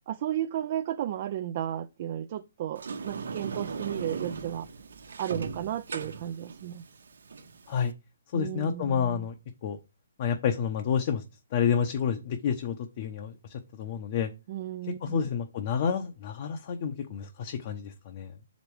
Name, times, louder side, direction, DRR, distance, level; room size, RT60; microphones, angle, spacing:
voice 1, 0.1-4.7 5.2-6.8 8.3-9.3 14.5-15.2, right 11 dB, 35° right, 0.4 m, -34 dB
Sliding door, 2.7-7.9, right 5 dB, 75° right, 1.1 m, -38 dB
voice 2, 8.3-9.3 9.6-9.8 10.2-11.2 11.5-13.3 13.8-14.3 15.0-18.3, left 7 dB, 35° left, 0.8 m, -29 dB
6.6 x 5.1 x 4.7 m
hypercardioid pair, 165°, 0 cm